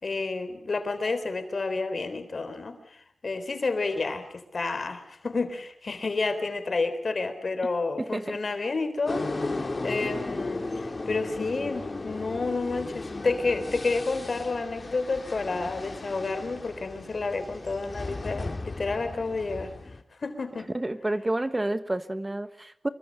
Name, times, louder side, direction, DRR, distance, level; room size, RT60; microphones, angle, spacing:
voice 1, 0.0-9.5 9.8-19.7 20.2-20.7, left 3 dB, 60° left, 9 dB, 3.9 m, -30 dB
voice 2, 8.0-8.4 20.7-22.9, right 1 dB, 25° right, 11 dB, 1.4 m, -29 dB
sound 1, 9.1-20.0, left 2 dB, 45° left, 2.8 m, -35 dB
25.5 x 23.5 x 6.5 m, 0.66 s
wide cardioid pair, 70°, 0 cm